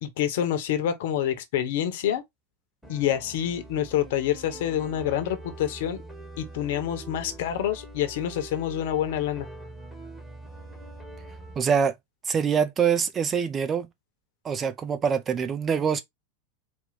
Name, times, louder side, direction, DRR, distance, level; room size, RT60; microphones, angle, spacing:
voice 1, 0.0-2.2 2.9-6.0 6.4-9.5, left 10 dB, 50° left, 0.9 m, -27 dB
sound 1, 2.8-11.6, right 2 dB, 5° right, 1.2 m, -43 dB
voice 2, 11.6-12.0 12.2-13.9 14.4-16.0, right 7 dB, 25° right, 0.5 m, -24 dB
4.3 x 2.3 x 3.9 m
figure-of-eight pair, 90°, 0 cm